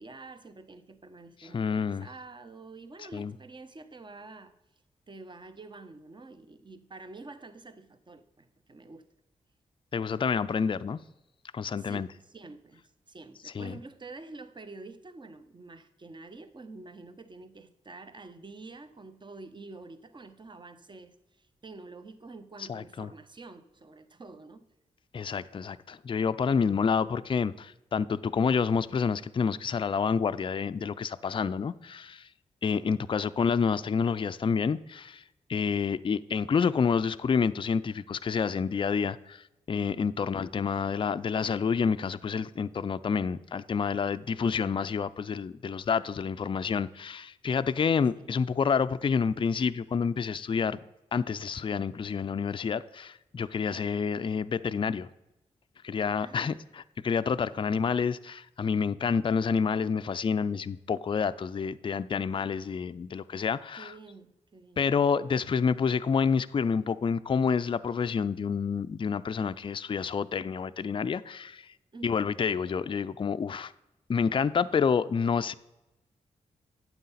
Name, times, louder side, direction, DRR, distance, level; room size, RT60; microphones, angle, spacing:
voice 1, 0.0-4.5 5.1-9.1 11.8-24.7 32.7-32.9 39.9-40.4 48.1-48.4 56.2-56.6 57.6-57.8 63.8-64.9 71.9-72.3, right 3 dB, 35° right, 0.8 m, -48 dB
voice 2, 1.5-2.1 3.1-3.3 9.9-11.0 11.5-12.1 13.5-13.8 22.7-23.1 25.1-32.3 32.6-35.2 35.5-50.8 51.1-55.1 55.8-63.9 64.8-71.7 72.0-73.7 74.1-75.5, left 6 dB, 35° left, 0.4 m, -28 dB
9.3 x 7.1 x 4.1 m
supercardioid pair, 40°, 14 cm